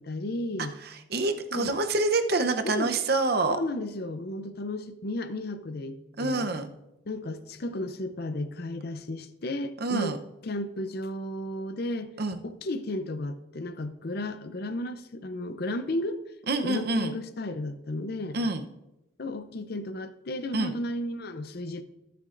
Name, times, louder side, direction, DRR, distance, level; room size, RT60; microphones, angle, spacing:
voice 1, 0.0-0.7 1.5-1.7 2.6-2.9 3.5-6.5 7.1-10.2 10.4-12.1 12.4-16.2 16.6-18.4 19.2-21.8, left 1 dB, 50° left, 10 dB, 0.6 m, -33 dB
voice 2, 0.8-3.6 6.2-6.7 9.8-10.2 12.2-12.4 16.5-17.1 18.3-18.6 20.5-20.7, right 2 dB, 50° right, 7 dB, 0.8 m, -27 dB
19.5 x 6.8 x 2.5 m, 0.93 s
head